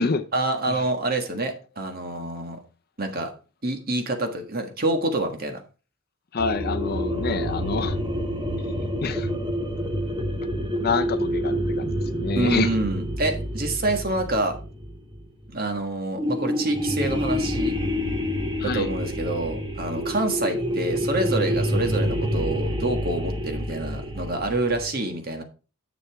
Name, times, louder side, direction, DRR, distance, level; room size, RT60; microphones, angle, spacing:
voice 1, 0.3-2.6 3.0-3.3 3.6-5.6 12.3-14.6 15.5-17.8 18.6-25.4, right 2 dB, 45° right, 1.5 m, -27 dB
voice 2, 6.3-8.0 9.0-9.3 10.8-12.8 18.6-18.9, left 4 dB, 45° left, 0.6 m, -27 dB
sound 1, 6.4-15.5 16.2-24.9, equal, 20° right, 1.2 m, -27 dB
10.0 x 7.0 x 3.5 m
head